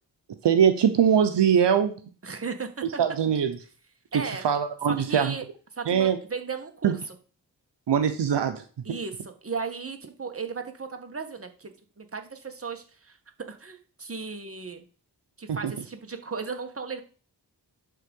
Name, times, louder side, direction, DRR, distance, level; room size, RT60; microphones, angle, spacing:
voice 1, 0.4-2.0 3.0-3.6 4.1-5.3 5.9-6.2 6.8-7.0 7.9-8.6 15.5-15.7, right 8 dB, 90° right, 8 dB, 0.8 m, -22 dB
voice 2, 2.2-2.8 4.1-4.5 4.9-5.4 5.8-6.9 8.8-11.7 12.0-13.2 13.5-14.8 15.4-17.0, right 5 dB, 35° right, 6 dB, 1.4 m, -36 dB
11.0 x 3.8 x 5.3 m, 0.39 s
cardioid pair, 55°, 41 cm